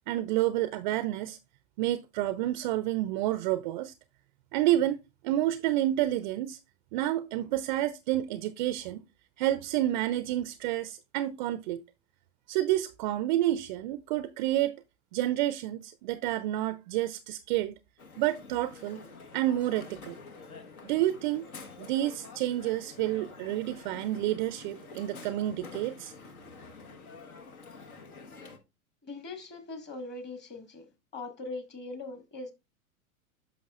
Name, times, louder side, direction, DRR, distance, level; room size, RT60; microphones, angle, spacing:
voice 1, 0.1-1.4 1.8-3.9 4.5-5.0 5.2-6.6 6.9-9.0 9.4-11.8 12.5-14.7 15.1-17.7 18.2-19.0 19.3-20.2 20.8-21.5 21.8-26.1, right 14 dB, 35° right, 0.4 m, -29 dB
Crowd, 18.0-28.6, left 4 dB, 75° left, 1.4 m, -48 dB
voice 2, 29.0-30.9 31.1-32.5, left 3 dB, 25° left, 1.5 m, -41 dB
9.9 x 6.0 x 2.4 m
hypercardioid pair, 100°, 43 cm